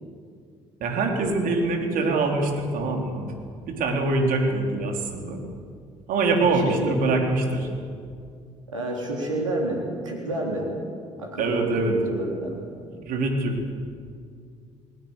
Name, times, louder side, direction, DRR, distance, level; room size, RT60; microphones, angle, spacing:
voice 1, 0.8-3.3 3.7-5.4 6.1-7.7 11.4-11.9 13.1-13.6, right 3 dB, 60° right, 2 dB, 3.9 m, -24 dB
voice 2, 8.7-10.7 11.2-12.6, right 1 dB, 90° right, -1 dB, 3.6 m, -29 dB
20.0 x 19.5 x 8.2 m, 2.2 s
figure-of-eight pair, 50°, 16 cm